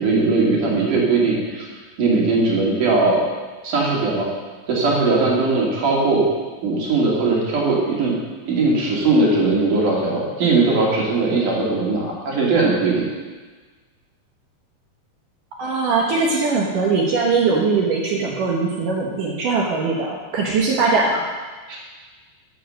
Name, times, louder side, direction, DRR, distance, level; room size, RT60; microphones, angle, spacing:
voice 1, 0.0-1.7 2.0-3.2 3.6-4.3 4.7-6.3 6.6-8.2 8.5-13.1 21.7-21.8, right 3 dB, 50° right, -3 dB, 3.5 m, -19 dB
voice 2, 15.6-21.2, right 4 dB, 70° right, -2 dB, 2.1 m, -21 dB
13.5 x 7.3 x 6.5 m, 1.4 s
omnidirectional pair, 5.3 m